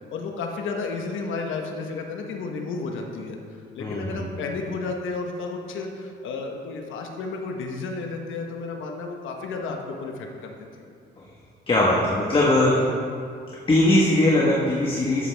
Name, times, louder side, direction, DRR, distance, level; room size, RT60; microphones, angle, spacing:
voice 1, 0.1-3.4 3.7-10.5, left 4 dB, 80° left, 2 dB, 1.1 m, -32 dB
voice 2, 3.8-4.1 11.7-12.9 13.7-15.3, left 1 dB, 25° left, -4 dB, 1.4 m, -20 dB
13.5 x 7.1 x 3.4 m, 2.4 s
cardioid pair, 90°, 20 cm